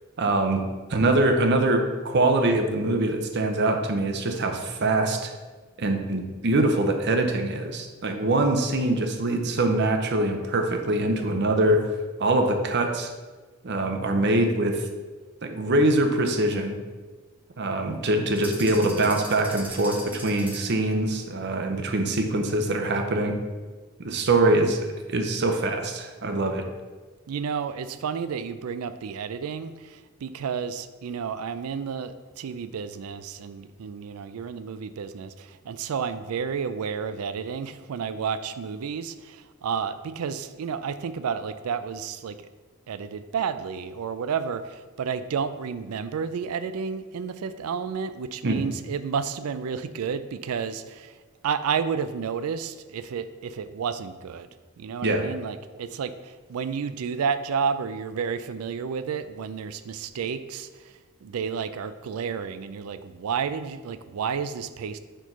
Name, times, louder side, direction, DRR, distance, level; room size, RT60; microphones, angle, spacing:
voice 1, 0.2-0.6 0.9-5.3 5.8-11.9 12.2-13.1 13.6-14.9 15.4-16.8 17.6-23.4 24.0-26.6 48.4-48.6 55.0-55.2, right 2 dB, 50° right, 5 dB, 0.7 m, -23 dB
sound 1, 18.4-20.8, right 1 dB, 10° right, 0.7 m, -40 dB
voice 2, 27.3-42.5 42.9-51.2 51.4-54.5 54.8-60.9 61.2-65.0, right 6 dB, 90° right, 12 dB, 0.4 m, -31 dB
4.5 x 4.5 x 5.4 m, 1.3 s
head